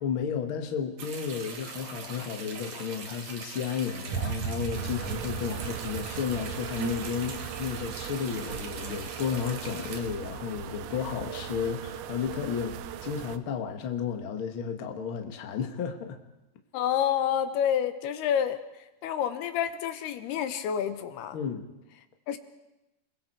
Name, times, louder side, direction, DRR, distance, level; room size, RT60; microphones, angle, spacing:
voice 1, 0.0-16.2 21.3-21.6, left 7 dB, 45° left, 4 dB, 1.7 m, -33 dB
sound 1, 1.0-10.0, right 5 dB, 50° right, 2.8 m, -42 dB
sound 2, 4.1-10.3, right 7 dB, 70° right, 1.7 m, -38 dB
sound 3, 4.8-13.4, right 11 dB, 85° right, 3.1 m, -39 dB
voice 2, 16.7-18.6 19.0-21.4 22.3-22.4, left 9 dB, 75° left, 10 dB, 2.8 m, -28 dB
29.5 x 22.0 x 4.6 m, 0.96 s
omnidirectional pair, 4.8 m